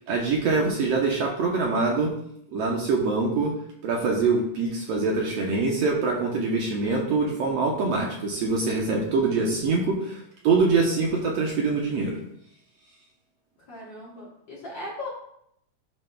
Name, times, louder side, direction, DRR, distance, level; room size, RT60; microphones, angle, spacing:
voice 1, 0.0-2.1 2.5-3.5 3.8-12.2, right 4 dB, 70° right, -1 dB, 1.7 m, -24 dB
voice 2, 13.7-15.1, left 1 dB, 50° left, -5 dB, 1.6 m, -38 dB
10.5 x 5.7 x 2.3 m, 0.72 s
omnidirectional pair, 3.5 m